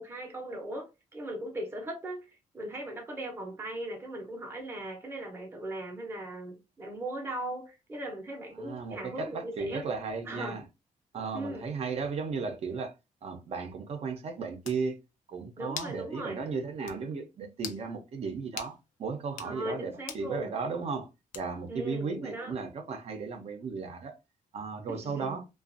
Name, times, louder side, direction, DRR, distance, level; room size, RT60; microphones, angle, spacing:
voice 1, 0.0-9.9 10.3-10.6 11.3-11.6 15.6-16.4 19.4-20.5 21.7-22.5 24.9-25.4, right 1 dB, 15° right, 0.7 m, -39 dB
voice 2, 8.5-10.6 11.1-12.9 13.2-15.0 15.3-21.1 21.3-24.2 24.5-25.4, right 4 dB, 50° right, 0.6 m, -35 dB
sound 1, 14.2-14.3 14.6-14.8 15.8-16.0 16.4-16.5 16.9-17.0 17.6-17.8 18.6-18.8 19.3-19.5 20.1-20.3 21.3-21.7, left 8 dB, 70° left, 0.5 m, -41 dB
2.5 x 2.3 x 2.5 m
cardioid pair, 140°, 14 cm